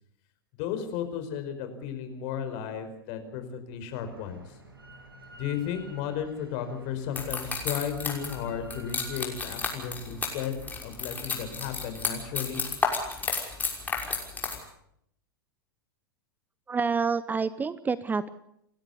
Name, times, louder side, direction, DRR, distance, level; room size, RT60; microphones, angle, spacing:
voice 1, 0.6-4.5 5.4-12.6, left 8 dB, 50° left, 8 dB, 5.1 m, -34 dB
Drill, 4.0-9.2, right 2 dB, 85° right, 7.4 m, -50 dB
sound 1, 7.2-14.6, left 4 dB, 15° left, 5.9 m, -32 dB
voice 2, 16.7-18.3, right 5 dB, 15° right, 16 dB, 0.9 m, -28 dB
29.5 x 13.0 x 8.5 m, 0.75 s
figure-of-eight pair, 95°, 12 cm